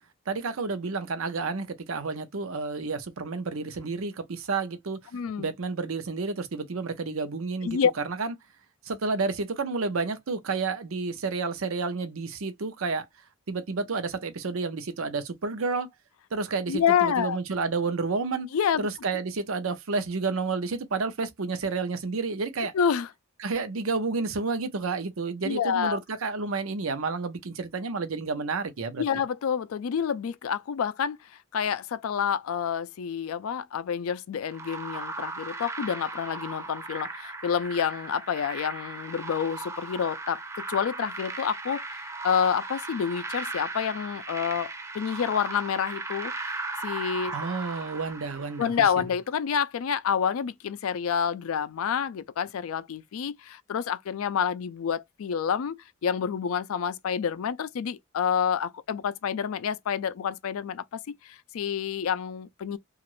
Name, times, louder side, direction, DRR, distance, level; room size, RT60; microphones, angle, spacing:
voice 1, 0.3-5.0 5.4-7.8 8.0-8.3 8.8-13.1 13.5-15.9 16.3-18.5 18.8-22.7 23.4-29.2 47.3-48.7, right 4 dB, 75° right, 0.6 m, -30 dB
voice 2, 5.1-5.5 7.6-7.9 16.7-17.4 18.5-18.9 22.7-23.1 25.4-26.0 29.0-47.3 48.6-62.8, left 7 dB, 80° left, 0.4 m, -28 dB
sound 1, 34.5-48.9, right 3 dB, 15° right, 0.4 m, -37 dB
2.9 x 2.4 x 3.0 m
head